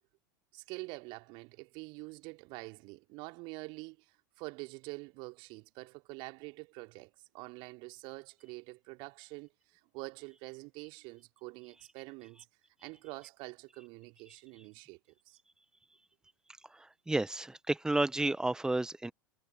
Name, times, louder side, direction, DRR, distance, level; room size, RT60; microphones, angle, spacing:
voice 1, 0.5-12.5 12.8-15.0 15.3-15.4, right 27 dB, 50° right, 3.6 m, -46 dB
voice 2, 17.1-19.1, right 2 dB, 5° right, 1.4 m, -31 dB
figure-of-eight pair, 80°, 11 cm